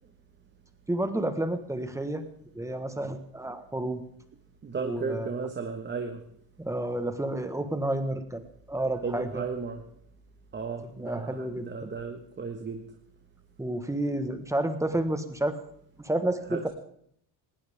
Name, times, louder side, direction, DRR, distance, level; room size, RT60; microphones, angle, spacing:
voice 1, 0.9-2.2 2.5-4.0 4.8-5.5 6.6-9.5 10.9-11.9 13.6-15.6 16.0-16.7, right 1 dB, 5° right, 8 dB, 1.4 m, -30 dB
voice 2, 4.6-6.2 9.0-9.8 10.5-12.8 16.5-16.6, right 5 dB, 25° right, 4 dB, 1.5 m, -34 dB
19.5 x 18.0 x 3.6 m, 0.66 s
cardioid pair, 140°, 43 cm